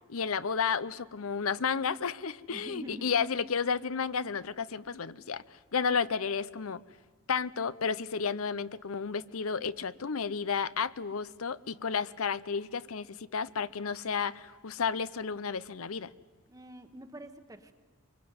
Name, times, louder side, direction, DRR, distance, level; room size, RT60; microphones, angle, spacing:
voice 1, 0.1-6.8 7.3-16.1, left 6 dB, 75° left, 17 dB, 0.7 m, -32 dB
voice 2, 2.5-3.1 16.5-17.7, equal, 15° right, 6 dB, 1.2 m, -45 dB
24.0 x 23.0 x 9.5 m, 1.4 s
head